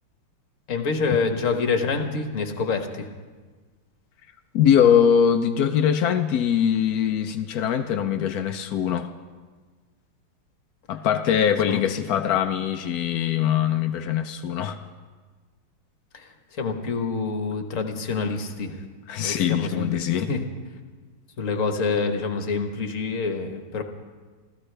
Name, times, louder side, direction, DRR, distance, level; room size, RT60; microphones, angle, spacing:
voice 1, 0.7-3.1 11.7-11.8 16.1-18.8 19.2-20.5 21.4-23.8, left 4 dB, 45° left, 5 dB, 1.3 m, -27 dB
voice 2, 4.5-9.1 10.9-14.8 19.1-20.3, left 8 dB, 80° left, 7 dB, 0.8 m, -22 dB
28.5 x 14.5 x 3.3 m, 1.4 s
omnidirectional pair, 2.4 m